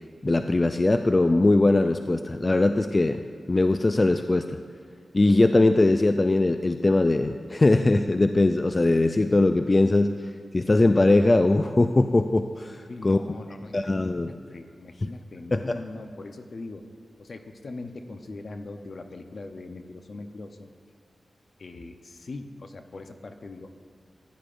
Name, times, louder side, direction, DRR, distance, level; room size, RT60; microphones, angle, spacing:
voice 1, 0.2-3.2 3.5-4.6 5.1-10.1 10.5-13.2 13.7-14.3 15.0-15.1 15.5-15.8, left 2 dB, 30° left, 7 dB, 0.3 m, -21 dB
voice 2, 12.9-16.9 17.2-20.7 21.6-23.8, left 2 dB, 55° left, 7 dB, 0.7 m, -41 dB
15.5 x 10.5 x 2.6 m, 2.2 s
wide cardioid pair, 100°, 0 cm